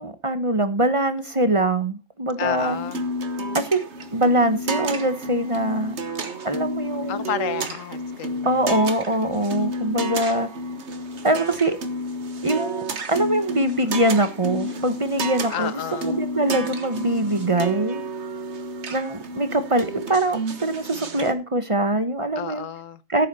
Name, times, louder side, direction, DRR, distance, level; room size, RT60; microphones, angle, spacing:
voice 1, 0.0-2.8 3.5-3.8 4.1-5.9 6.4-7.3 8.4-10.5 11.2-11.8 12.4-18.0 18.9-22.6 23.1-23.3, right 1 dB, 25° right, 1.1 m, -23 dB
voice 2, 2.4-3.0 7.1-8.6 15.5-16.2 22.3-23.0, left 8 dB, 90° left, 1.3 m, -30 dB
sound 1, 2.6-21.3, right 1 dB, 60° right, 1.6 m, -31 dB
15.0 x 8.6 x 4.2 m
omnidirectional pair, 1.3 m